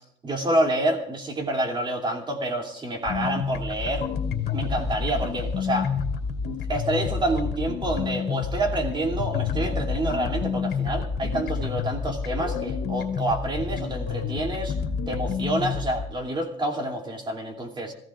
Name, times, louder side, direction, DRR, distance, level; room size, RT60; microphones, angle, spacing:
voice 1, 0.2-4.0 4.5-5.9 6.4-14.7 15.1-17.9, right 1 dB, 30° right, 2 dB, 2.8 m, -28 dB
sound 1, 3.1-16.1, left 6 dB, 75° left, 2.2 m, -29 dB
25.5 x 15.5 x 2.5 m, 0.73 s
cardioid pair, 110°, 17 cm